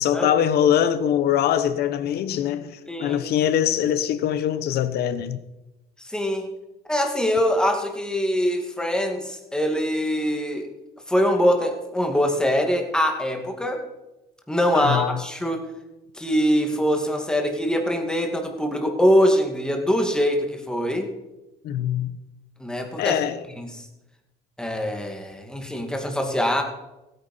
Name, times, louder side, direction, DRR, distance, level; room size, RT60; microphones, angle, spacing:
voice 1, 0.0-5.4 14.7-15.2 21.6-22.1 23.0-23.4, left 10 dB, 70° left, 1.0 m, -23 dB
voice 2, 2.9-3.2 6.0-6.5 6.9-10.7 11.1-13.8 14.5-15.7 16.1-21.1 22.6-23.2 23.6-23.8 24.6-26.6, equal, 5° left, 2.3 m, -23 dB
16.0 x 9.5 x 5.5 m
cardioid pair, 110°, 17 cm